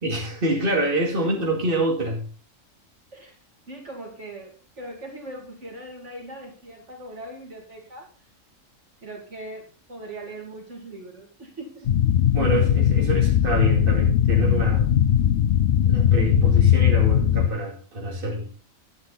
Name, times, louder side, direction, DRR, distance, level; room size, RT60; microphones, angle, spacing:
voice 1, 0.0-2.3 12.3-14.9 15.8-18.5, right 1 dB, 45° right, -1 dB, 2.8 m, -26 dB
voice 2, 3.7-8.1 9.0-11.9, right 1 dB, 60° right, 0 dB, 3.0 m, -40 dB
sound 1, 11.9-17.5, left 10 dB, 60° left, 0.9 m, -19 dB
11.5 x 9.6 x 4.1 m, 0.37 s
omnidirectional pair, 1.4 m